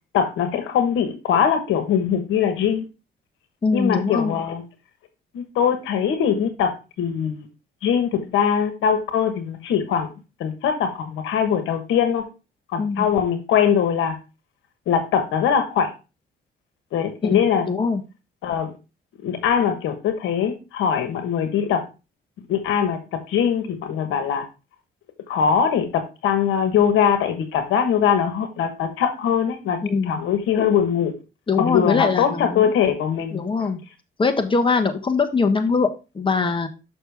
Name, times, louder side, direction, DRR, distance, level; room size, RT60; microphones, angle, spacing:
voice 1, 0.1-2.8 3.7-4.6 5.3-7.5 7.8-10.1 10.4-12.3 12.7-14.1 14.9-15.9 16.9-17.7 18.4-18.7 19.2-21.8 22.5-23.0 23.3-24.4 25.3-29.8 30.1-31.1 31.6-33.4, left 8 dB, 85° left, 8 dB, 1.2 m, -21 dB
voice 2, 3.6-4.4 12.8-13.1 17.2-18.0 29.8-30.2 31.5-32.7 33.3-33.8 34.2-35.9 36.1-36.7, left 4 dB, 25° left, 6 dB, 1.2 m, -22 dB
6.6 x 6.0 x 3.4 m, 0.29 s
cardioid pair, 90°, 20 cm